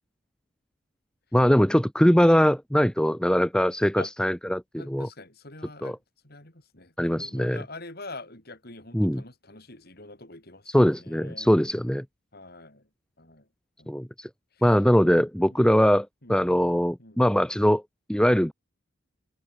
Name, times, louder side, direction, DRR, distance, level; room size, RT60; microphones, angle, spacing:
voice 1, 1.3-5.1 5.8-6.0 7.0-7.6 8.9-9.2 10.7-12.0 13.9-14.3 14.6-17.8 18.1-18.5, equal, 5° left, 0.9 m, -22 dB
voice 2, 4.8-6.0 6.2-11.5 12.3-12.8 13.2-13.4 13.8-13.9 15.5-15.9 16.2-16.3 17.0-17.2, left 2 dB, 45° left, 4.2 m, -45 dB
head